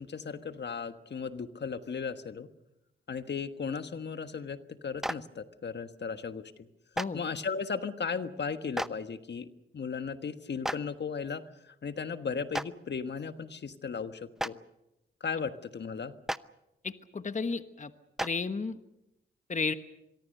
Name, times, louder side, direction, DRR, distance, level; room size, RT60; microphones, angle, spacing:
voice 1, 0.0-2.5 3.1-6.5 7.1-9.5 9.7-14.6 15.2-16.1, left 5 dB, 55° left, 10 dB, 1.4 m, -36 dB
Clapping, 5.0-5.1 6.9-7.0 8.7-8.9 10.6-10.8 12.5-12.6 14.4-14.5 16.3-16.4 18.2-18.3, equal, ahead, 0.8 m, -31 dB
voice 2, 16.8-17.9 18.2-18.8 19.5-19.7, left 4 dB, 35° left, 10 dB, 1.2 m, -33 dB
25.0 x 22.5 x 6.6 m, 0.89 s
cardioid pair, 55°, 21 cm